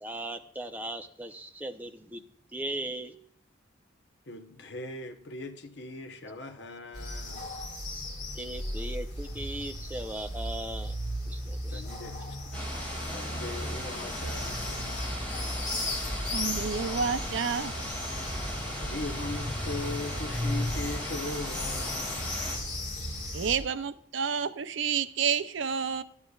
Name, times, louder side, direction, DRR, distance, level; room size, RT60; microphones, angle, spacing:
voice 1, 0.0-2.2 2.5-3.2 8.3-11.0 11.3-11.8, right 1 dB, 10° right, 0.6 m, -38 dB
voice 2, 4.3-7.5 11.7-12.7 13.0-15.0 18.8-22.3, left 2 dB, 60° left, 0.9 m, -40 dB
sound 1, 6.9-23.6, left 1 dB, 40° left, 1.9 m, -35 dB
sound 2, 12.5-22.6, left 1 dB, 5° left, 3.5 m, -38 dB
voice 3, 16.3-17.7 23.3-26.0, right 6 dB, 70° right, 0.5 m, -29 dB
13.0 x 9.6 x 2.4 m
head